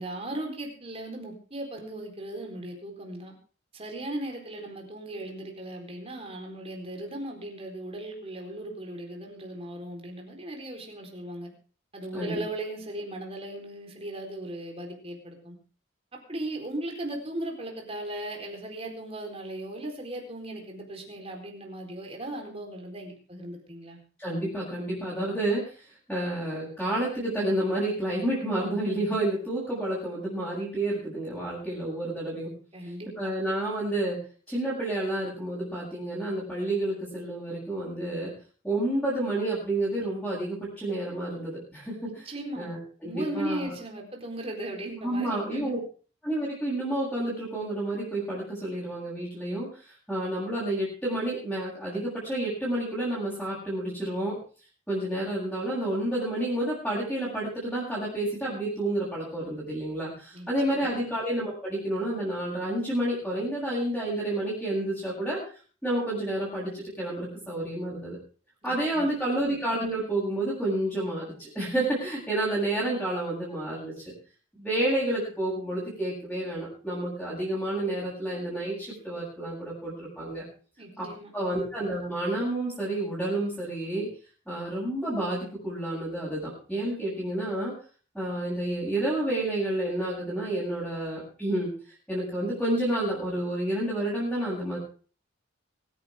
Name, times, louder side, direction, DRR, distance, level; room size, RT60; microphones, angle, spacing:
voice 1, 0.0-3.3 3.7-11.5 11.9-15.6 16.3-24.0 32.7-33.3 42.2-42.7 43.0-45.6 60.3-60.9 68.6-69.1 80.8-81.3, right 1 dB, 30° right, 2 dB, 4.2 m, -37 dB
voice 2, 24.2-25.6 26.1-32.5 33.2-34.2 34.5-38.3 38.6-42.3 42.6-43.7 45.0-45.8 46.2-54.4 54.9-65.4 65.8-68.2 68.6-74.0 74.6-80.4 81.0-84.1 84.5-87.7 88.1-91.7 92.1-94.8, right 1 dB, ahead, -8 dB, 7.8 m, -30 dB
24.5 x 10.0 x 3.7 m, 0.39 s
head